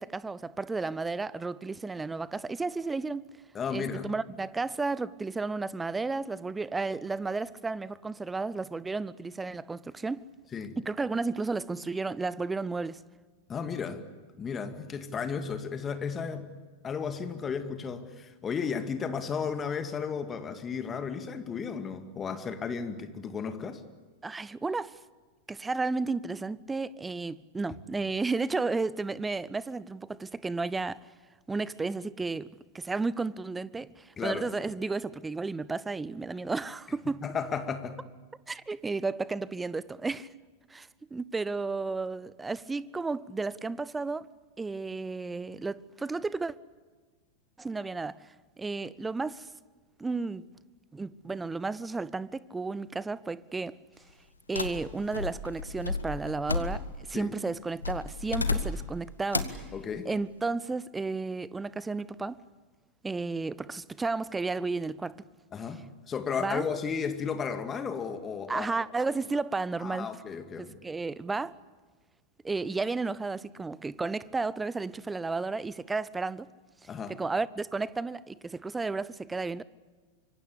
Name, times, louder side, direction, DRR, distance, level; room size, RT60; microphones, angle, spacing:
voice 1, 0.0-3.3 3.7-10.3 10.8-13.0 24.2-25.0 25.5-31.0 31.5-32.5 32.7-37.2 38.5-40.3 40.7-44.3 44.6-46.5 47.6-48.2 48.6-49.5 50.0-50.4 50.9-53.8 54.5-59.7 60.0-62.4 63.0-65.2 66.4-66.6 68.5-70.1 70.6-71.6 72.4-76.5 77.1-79.6, right 3 dB, 10° right, 0.8 m, -33 dB
voice 2, 3.5-4.1 10.5-10.8 13.5-14.0 14.4-16.5 16.8-23.8 34.2-34.4 37.2-38.0 57.1-57.3 59.7-60.1 65.5-68.7 69.8-70.7 76.9-77.2, left 6 dB, 20° left, 2.4 m, -34 dB
sound 1, 54.5-57.1 57.8-58.9 59.3-59.7, left 3 dB, 80° left, 1.6 m, -32 dB
25.5 x 24.0 x 8.5 m
figure-of-eight pair, 90°, 0 cm